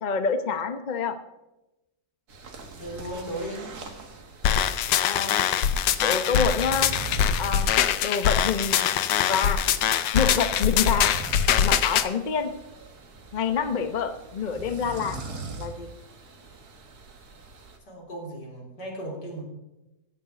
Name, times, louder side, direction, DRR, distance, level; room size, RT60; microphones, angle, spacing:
voice 1, 0.0-1.2 5.0-5.4 6.0-6.9 7.4-7.7 8.0-9.6 10.1-11.2 11.6-12.5 13.3-15.2 15.6-15.9, left 6 dB, 40° left, 9 dB, 0.6 m, -27 dB
sound 1, 2.3-17.8, right 3 dB, 60° right, 2.1 m, -42 dB
voice 2, 2.7-3.7 17.9-19.4, right 1 dB, 70° left, -1 dB, 4.4 m, -36 dB
sound 2, 4.4-12.1, left 9 dB, 90° left, 1.5 m, -23 dB
16.0 x 7.2 x 6.8 m, 0.96 s
omnidirectional pair, 1.9 m